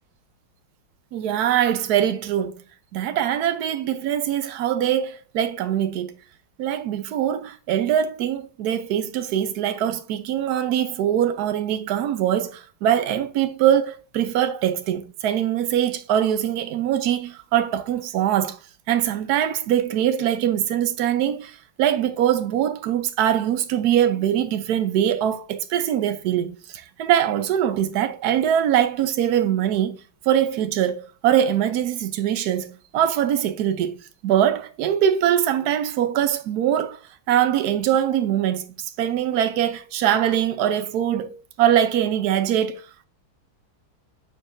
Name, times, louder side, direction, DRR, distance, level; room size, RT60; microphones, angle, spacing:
voice 1, 1.1-2.6 2.9-6.1 6.6-18.6 18.9-30.0 30.3-33.9 34.2-37.0 37.3-42.8, right 10 dB, 90° right, 0.8 m, -22 dB
9.6 x 4.5 x 2.6 m
omnidirectional pair, 2.3 m